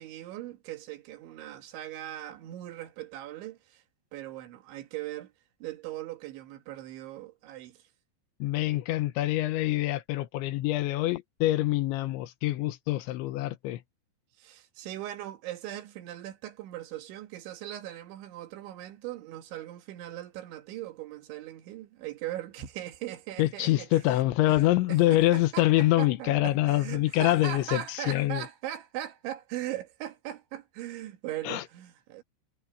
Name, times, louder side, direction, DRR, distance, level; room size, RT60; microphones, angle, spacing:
voice 1, 0.0-3.8 4.1-5.3 5.6-7.8 14.4-24.6 24.9-32.2, right 13 dB, 80° right, 4.0 m, -39 dB
voice 2, 8.4-13.8 23.4-28.4 31.4-31.6, left 16 dB, 80° left, 3.3 m, -25 dB
omnidirectional pair, 5.3 m